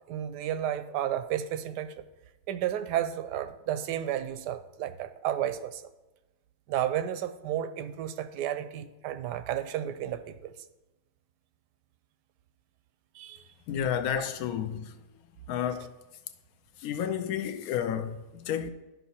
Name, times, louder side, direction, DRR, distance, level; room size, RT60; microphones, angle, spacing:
voice 1, 0.1-1.9 2.5-5.8 6.7-10.5 13.1-13.5 14.1-14.3, right 11 dB, 85° right, 1.2 m, -32 dB
voice 2, 13.7-15.0 15.5-15.9 16.8-18.7, left 9 dB, 70° left, 1.0 m, -31 dB
12.0 x 5.6 x 2.8 m
omnidirectional pair, 1.8 m